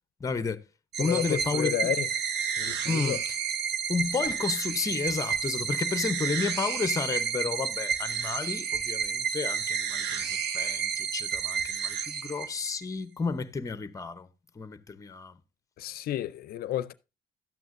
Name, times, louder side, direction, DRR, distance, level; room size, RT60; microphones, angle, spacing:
voice 1, 0.2-0.6 1.0-1.9 2.9-3.2 3.9-14.3 14.6-15.4, left 4 dB, 20° left, 0.7 m, -32 dB
sound 1, 0.9-12.8, right 7 dB, 80° right, 1.0 m, -31 dB
voice 2, 1.0-2.1 2.6-3.2 15.8-16.9, left 13 dB, 65° left, 0.5 m, -31 dB
12.5 x 9.2 x 2.6 m
cardioid pair, 110°, 17 cm